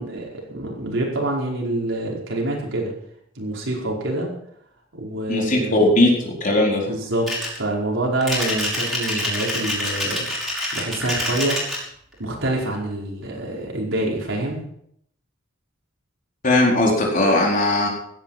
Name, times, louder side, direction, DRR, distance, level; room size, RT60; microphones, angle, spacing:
voice 1, 0.0-2.9 3.4-4.3 4.9-5.8 6.9-10.3 10.7-11.6 12.2-14.6, right 1 dB, 75° right, -2 dB, 5.0 m, -26 dB
voice 2, 5.3-6.9 16.4-17.9, left 1 dB, 45° left, -1 dB, 4.3 m, -18 dB
sound 1, 7.3-7.6 8.2-11.8, left 1 dB, ahead, 5.8 m, -26 dB
16.5 x 11.0 x 5.8 m, 0.70 s
head